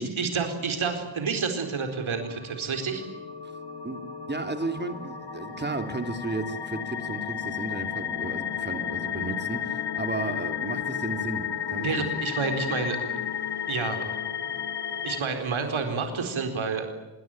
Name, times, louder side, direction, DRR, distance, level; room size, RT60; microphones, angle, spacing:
voice 1, 0.0-3.0 11.8-13.2 13.7-14.0 14.5-14.6 15.0-16.9, right 5 dB, 80° right, 5 dB, 4.4 m, -29 dB
sound 1, 2.0-15.2, left 9 dB, 55° left, 2.8 m, -33 dB
voice 2, 4.3-12.3, right 3 dB, 20° right, 6 dB, 3.1 m, -34 dB
sound 2, 11.5-16.4, equal, 40° right, 7.5 m, -50 dB
26.5 x 23.5 x 9.0 m, 1.1 s
wide cardioid pair, 145°, 47 cm